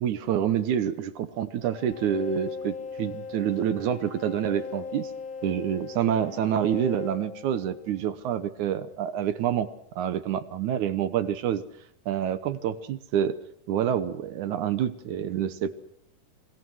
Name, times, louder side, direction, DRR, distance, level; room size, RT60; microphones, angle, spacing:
voice 1, 0.0-5.1 5.4-9.7 10.0-11.6 12.1-13.4 13.7-15.8, right 9 dB, 70° right, 13 dB, 2.3 m, -27 dB
sound 1, 1.6-8.1, left 5 dB, 55° left, 2.7 m, -39 dB
27.0 x 22.0 x 6.3 m, 0.70 s
omnidirectional pair, 3.8 m